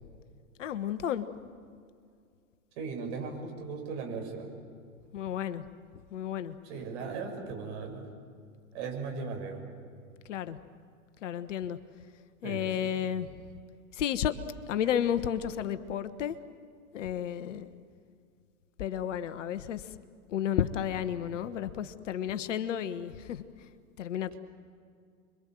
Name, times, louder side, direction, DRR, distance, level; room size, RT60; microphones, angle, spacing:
voice 1, 0.6-1.3 5.1-5.6 6.1-6.6 10.3-10.6 11.2-11.8 12.4-13.3 13.9-14.4 14.7-16.4 16.9-17.7 18.8-19.9 20.3-23.7 24.0-24.3, left 9 dB, 55° left, 11 dB, 1.3 m, -32 dB
voice 2, 2.8-4.5 6.7-8.1 8.7-9.6 12.4-12.9, right 4 dB, 50° right, 2 dB, 7.2 m, -37 dB
30.0 x 23.0 x 7.7 m, 2.2 s
figure-of-eight pair, 110°, 43 cm